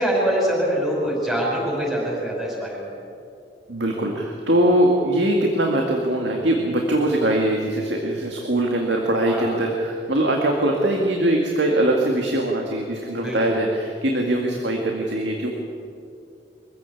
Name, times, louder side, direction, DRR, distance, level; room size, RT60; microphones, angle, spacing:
voice 1, 0.0-2.8 9.3-9.5 13.2-13.6, right 1 dB, ahead, -4 dB, 5.7 m, -24 dB
voice 2, 3.7-15.5, right 1 dB, 70° right, 0 dB, 2.2 m, -22 dB
24.0 x 15.5 x 8.6 m, 2.4 s
head